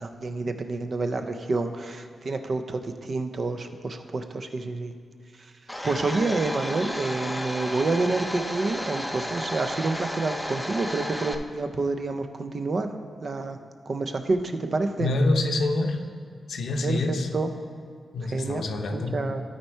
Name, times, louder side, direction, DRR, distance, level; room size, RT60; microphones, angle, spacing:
voice 1, 0.0-4.9 5.8-12.9 13.2-13.6 13.9-15.1 16.8-17.5 18.3-18.6 18.9-19.4, right 3 dB, 50° right, 6 dB, 0.6 m, -28 dB
Domestic sounds home sounds, 5.7-11.4, equal, 5° left, 0.6 m, -33 dB
voice 2, 15.0-16.0 16.5-17.3 18.1-19.2, left 2 dB, 80° left, 4 dB, 0.7 m, -26 dB
12.5 x 4.4 x 4.5 m, 2.2 s
cardioid pair, 90°, 0 cm